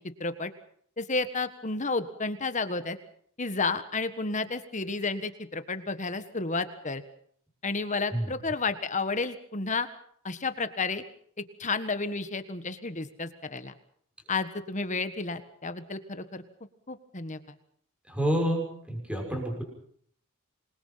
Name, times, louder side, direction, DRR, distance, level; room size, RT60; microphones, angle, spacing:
voice 1, 0.2-0.5 1.0-3.0 3.4-7.0 7.6-9.9 10.2-11.0 11.6-13.7 14.3-16.4 16.9-17.4, left 3 dB, 35° left, 11 dB, 1.5 m, -31 dB
voice 2, 18.1-19.6, equal, 5° right, 2 dB, 6.2 m, -29 dB
27.0 x 22.0 x 5.8 m, 0.62 s
head